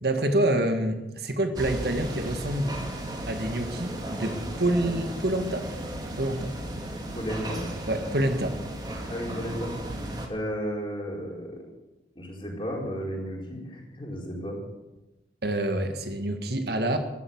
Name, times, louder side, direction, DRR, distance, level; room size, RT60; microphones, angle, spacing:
voice 1, 0.0-2.7 3.3-5.7 6.2-6.5 7.9-8.6 15.4-17.0, right 1 dB, 65° right, 6 dB, 1.8 m, -27 dB
sound 1, 1.6-10.3, right 1 dB, 25° right, 2.3 m, -35 dB
voice 2, 7.1-7.6 9.1-9.7 10.3-11.6 12.2-14.6, equal, 30° left, -1 dB, 4.4 m, -33 dB
14.5 x 12.0 x 8.0 m, 1.0 s
head